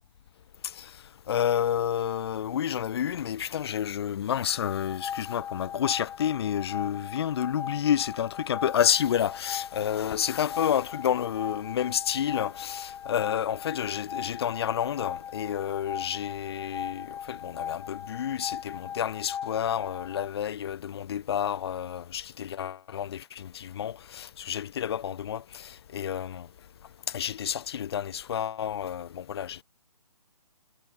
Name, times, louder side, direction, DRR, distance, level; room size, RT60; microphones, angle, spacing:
voice 1, 1.3-26.5 27.1-29.6, left 9 dB, 40° left, 1.5 m, -30 dB
sound 1, 4.5-20.3, left 8 dB, 10° left, 6.6 m, -39 dB
hypercardioid pair, 155°, 20 cm